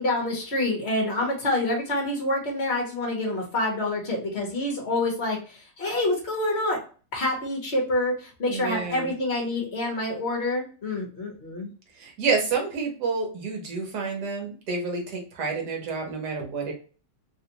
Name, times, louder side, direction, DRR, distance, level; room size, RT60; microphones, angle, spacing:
voice 1, 0.0-6.8 7.1-11.7, left 1 dB, 40° left, -1 dB, 1.0 m, -27 dB
voice 2, 8.5-9.1 12.0-16.7, right 4 dB, 55° right, 1 dB, 1.4 m, -29 dB
3.4 x 2.5 x 2.8 m, 0.38 s
omnidirectional pair, 2.3 m